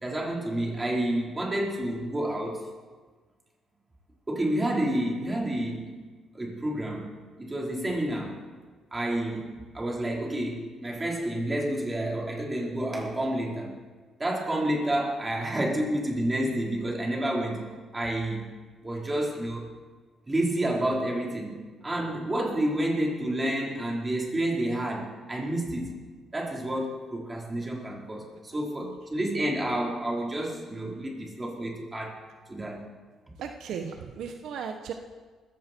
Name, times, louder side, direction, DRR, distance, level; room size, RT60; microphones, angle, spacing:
voice 1, 0.0-2.7 4.3-6.0 6.3-7.1 7.4-8.4 8.9-13.7 14.2-18.5 18.8-19.7 20.3-26.0 26.3-32.2 32.5-32.8, right 1 dB, 20° right, -2 dB, 4.5 m, -29 dB
voice 2, 33.4-34.9, right 7 dB, 80° right, 5 dB, 1.2 m, -36 dB
19.5 x 16.0 x 4.6 m, 1.4 s
cardioid pair, 90°, 0 cm